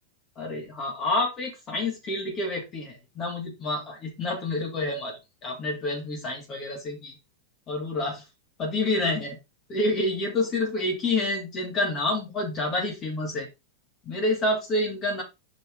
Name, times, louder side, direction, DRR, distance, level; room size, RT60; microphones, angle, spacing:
voice 1, 0.4-5.2 5.4-7.2 7.7-8.2 8.6-9.4 9.7-13.5 14.0-15.2, left 2 dB, 30° left, 0 dB, 2.8 m, -28 dB
5.7 x 5.2 x 3.8 m, 0.23 s
figure-of-eight pair, 90°, 0 cm